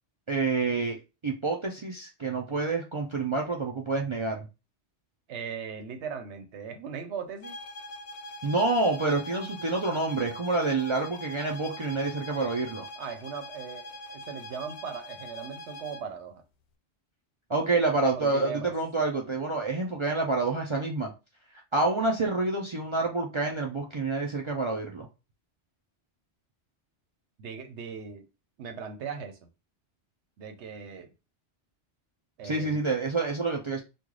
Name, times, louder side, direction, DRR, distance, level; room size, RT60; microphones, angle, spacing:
voice 1, 0.3-1.0 1.2-4.5 8.4-12.8 17.5-21.1 21.7-25.1 32.4-33.8, right 3 dB, 50° right, 0.3 m, -28 dB
voice 2, 5.3-7.6 13.0-16.4 18.1-18.7 27.4-28.3 28.6-29.4 30.4-31.1 32.4-32.9, right 6 dB, 75° right, 0.9 m, -39 dB
sound 1, 7.4-16.1, left 1 dB, 70° left, 0.8 m, -43 dB
3.1 x 2.3 x 3.6 m
omnidirectional pair, 1.2 m